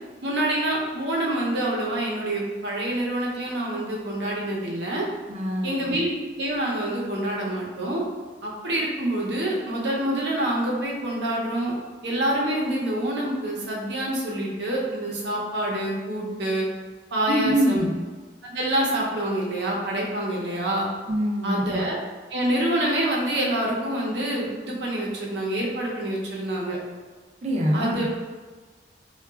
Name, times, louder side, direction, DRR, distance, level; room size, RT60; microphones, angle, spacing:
voice 1, 0.2-5.1 5.6-8.0 8.4-11.7 12.0-16.7 17.1-17.9 18.4-20.9 21.4-22.0 22.3-26.8 27.7-28.1, right 1 dB, 80° right, -3 dB, 0.7 m, -26 dB
voice 2, 5.3-5.9 17.3-17.9 21.1-21.8 27.4-28.1, right 1 dB, 40° right, -2 dB, 0.5 m, -24 dB
3.8 x 2.3 x 2.3 m, 1.4 s
head